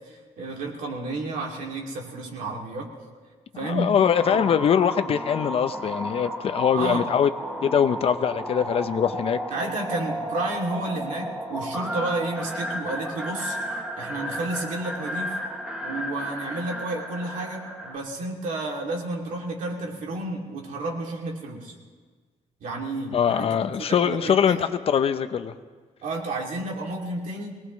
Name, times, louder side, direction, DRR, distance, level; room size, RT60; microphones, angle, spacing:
voice 1, 0.1-2.9 3.6-3.9 4.2-4.4 6.7-7.1 9.5-13.6 13.9-15.4 15.8-21.7 22.6-23.5 23.9-24.6 26.0-27.6, right 2 dB, 80° right, -1 dB, 2.5 m, -31 dB
voice 2, 3.6-7.3 7.6-9.4 23.1-25.5, left 8 dB, 50° left, 10 dB, 0.6 m, -22 dB
sound 1, 4.1-18.0, equal, 5° right, 1.1 m, -33 dB
23.5 x 19.0 x 3.1 m, 1.5 s
wide cardioid pair, 165°, 13 cm